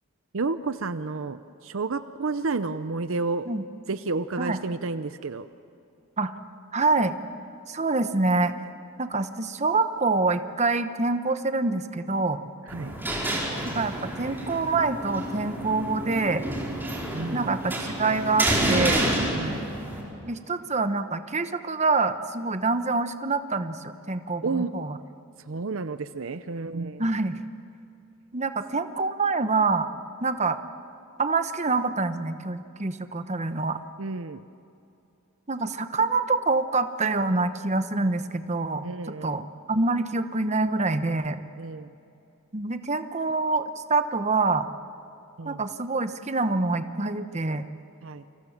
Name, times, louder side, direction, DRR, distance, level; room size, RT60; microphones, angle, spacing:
voice 1, 0.3-3.5 3.9-5.5 12.7-12.9 17.1-17.6 19.3-19.6 24.4-24.7 25.5-27.1 34.0-34.4 38.8-39.4 41.6-41.9 45.4-45.6 48.0-48.2, right 3 dB, 60° right, 12 dB, 0.7 m, -31 dB
voice 2, 6.7-7.2 7.7-8.5 9.0-12.5 13.6-16.4 17.3-19.1 20.3-25.0 27.0-27.4 28.3-29.9 30.2-30.6 31.2-33.8 35.5-39.4 39.7-41.4 42.5-44.7 45.5-47.7, right 3 dB, 30° right, 9 dB, 1.0 m, -26 dB
sound 1, 12.7-20.0, right 1 dB, 10° right, 4.7 m, -29 dB
29.0 x 25.5 x 7.3 m, 2.7 s
head